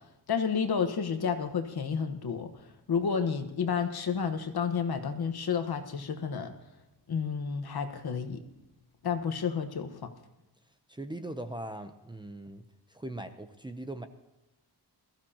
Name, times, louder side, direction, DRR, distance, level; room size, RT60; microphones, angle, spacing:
voice 1, 0.3-2.5 2.9-6.5 7.1-8.4 9.0-10.0, left 6 dB, 65° left, 7 dB, 1.4 m, -30 dB
voice 2, 10.9-12.6 12.9-14.1, right 1 dB, 10° right, 8 dB, 0.6 m, -40 dB
21.5 x 14.5 x 2.9 m, 0.99 s
wide cardioid pair, 160°, 40 cm